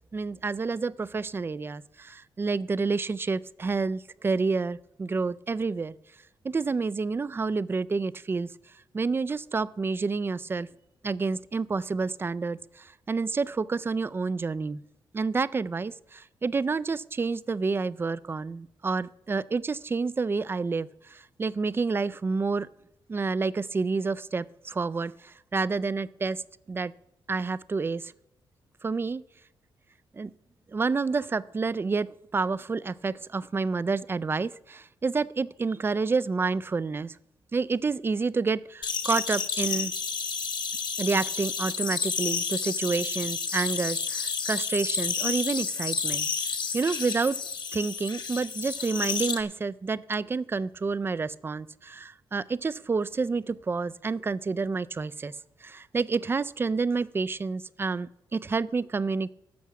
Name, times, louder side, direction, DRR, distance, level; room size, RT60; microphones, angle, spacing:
voice 1, 0.1-5.9 6.4-8.5 8.9-10.7 11.0-14.8 15.1-22.7 23.1-26.4 26.7-26.9 27.3-28.1 28.8-29.2 30.1-30.3 30.7-37.2 37.5-39.9 41.0-46.3 46.7-47.4 47.7-55.3 55.6-59.3, right 4 dB, 25° right, 17 dB, 0.3 m, -29 dB
sound 1, 38.8-49.4, left 5 dB, 50° left, 1.1 m, -30 dB
12.0 x 7.2 x 5.9 m, 0.86 s
cardioid pair, 110°, 9 cm